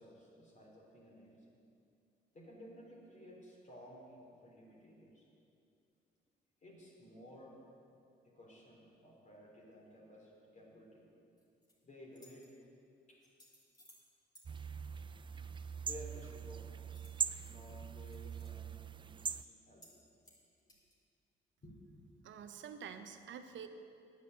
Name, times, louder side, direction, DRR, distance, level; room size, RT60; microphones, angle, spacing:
voice 1, 0.0-1.5 2.3-5.3 6.6-7.6 8.2-11.1 11.8-12.5 13.1-13.2 15.4-16.8 17.4-19.9 21.6-22.0, equal, 40° left, -3 dB, 3.4 m, -55 dB
sound 1, 11.4-11.7 12.1-12.5 13.2-14.0 14.3-14.5 16.9-17.5 17.8-18.5 18.8-18.9 19.3-19.5 19.8-20.0 20.2-21.0, equal, 20° left, 3.0 m, -63 dB
sound 2, 14.5-19.4, right 6 dB, 25° right, 0.3 m, -42 dB
voice 2, 22.2-23.7, right 7 dB, 70° right, 8 dB, 0.9 m, -48 dB
9.5 x 8.6 x 7.5 m, 2.5 s
cardioid pair, 90°, 20 cm